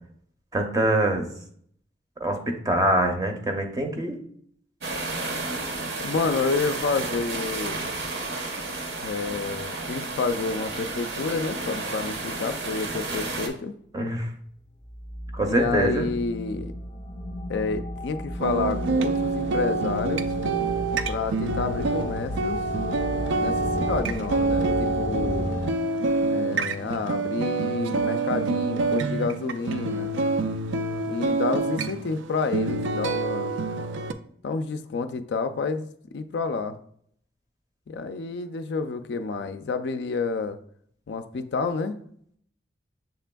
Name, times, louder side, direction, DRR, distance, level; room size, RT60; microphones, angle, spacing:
voice 1, 0.5-1.2 2.2-4.2 13.9-14.3 15.3-16.1, right 1 dB, 20° right, 4 dB, 0.5 m, -24 dB
sound 1, 4.8-13.5, right 2 dB, 60° right, 0.7 m, -32 dB
voice 2, 6.0-7.8 9.0-13.7 15.4-16.7 17.5-20.3 21.1-22.6 23.3-25.5 26.3-30.1 31.1-33.5 34.4-35.9 36.1-36.8 37.9-40.6 41.1-42.0, left 4 dB, 65° left, 9 dB, 0.3 m, -29 dB
sound 2, 14.9-25.7, left 1 dB, 25° left, 0.7 m, -33 dB
sound 3, 18.4-34.1, right 3 dB, 90° right, 0.4 m, -27 dB
6.8 x 3.4 x 2.2 m, 0.64 s
head